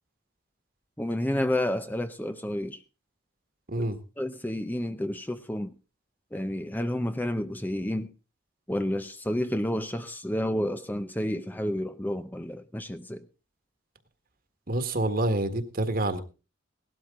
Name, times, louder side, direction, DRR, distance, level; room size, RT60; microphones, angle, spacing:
voice 1, 1.0-2.8 3.8-3.9 4.2-5.7 6.3-8.1 8.7-13.3, left 1 dB, 10° left, 0.7 m, -30 dB
voice 2, 14.7-16.2, right 1 dB, 50° right, 1.7 m, -27 dB
17.5 x 12.5 x 3.7 m
head